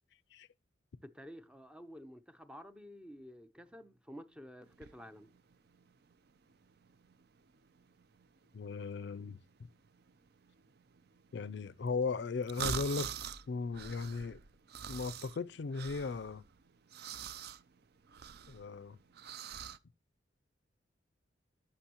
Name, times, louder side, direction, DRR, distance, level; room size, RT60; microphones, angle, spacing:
voice 1, 1.0-5.3, equal, 5° right, 0.5 m, -51 dB
sound 1, 4.6-19.8, right 7 dB, 55° right, 0.5 m, -45 dB
voice 2, 8.5-9.4 11.3-13.1 13.5-14.4 14.9-16.4 18.5-19.0, left 4 dB, 60° left, 0.4 m, -37 dB
11.5 x 6.8 x 2.9 m
head